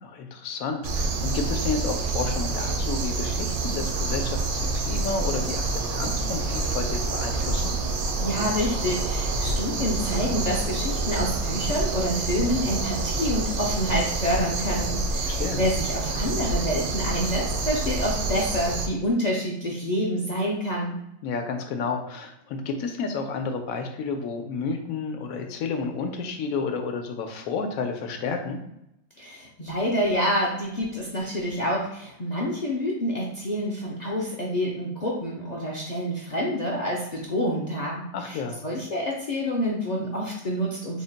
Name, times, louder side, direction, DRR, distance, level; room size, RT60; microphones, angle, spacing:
voice 1, 0.0-7.7 15.3-15.6 21.2-28.6 38.1-38.6, left 5 dB, 80° left, 5 dB, 1.0 m, -31 dB
sound 1, 0.8-18.9, right 3 dB, 90° right, 1.1 m, -27 dB
voice 2, 8.2-21.0 29.2-38.4 38.6-41.0, equal, 55° left, -3 dB, 0.4 m, -27 dB
3.8 x 2.1 x 3.9 m, 0.82 s
omnidirectional pair, 1.5 m